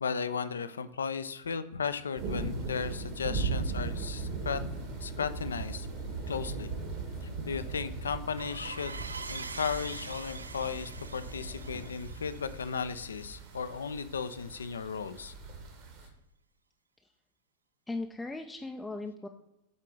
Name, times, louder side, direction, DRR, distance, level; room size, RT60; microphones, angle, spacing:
voice 1, 0.0-4.6 5.0-5.9 6.3-6.7 7.2-8.9 9.3-15.3, left 6 dB, 70° left, 13 dB, 0.4 m, -35 dB
sound 1, 2.1-16.1, right 4 dB, 50° right, 1.4 m, -39 dB
sound 2, 3.6-11.9, left 6 dB, 45° left, 0.7 m, -50 dB
sound 3, 8.4-13.7, right 4 dB, 75° right, 0.4 m, -44 dB
voice 2, 17.9-19.3, left 2 dB, 5° left, 3 dB, 0.4 m, -37 dB
8.2 x 3.8 x 4.7 m, 0.90 s
figure-of-eight pair, 90°, 0 cm